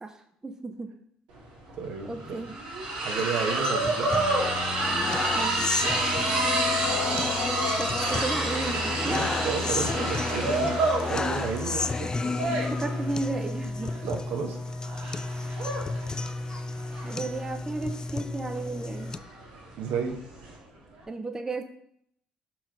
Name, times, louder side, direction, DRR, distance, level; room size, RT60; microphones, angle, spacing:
voice 1, 0.0-0.9 2.0-2.6 5.3-5.7 7.8-9.2 12.2-14.0 17.0-19.1 21.1-21.6, right 3 dB, 20° right, 7 dB, 0.7 m, -34 dB
Zipline water landing splash, 1.4-1.5 1.7-20.6, right 2 dB, 90° right, 2.1 m, -29 dB
voice 2, 1.8-2.3 3.0-4.3 8.8-10.7 11.1-12.2 14.0-14.6 14.9-15.2 19.8-20.2, right 5 dB, 70° right, 4 dB, 1.1 m, -32 dB
sound 1, 3.2-19.2, left 3 dB, 25° left, 0.3 m, -32 dB
5.9 x 4.6 x 4.5 m, 0.69 s
supercardioid pair, 70°, 3 cm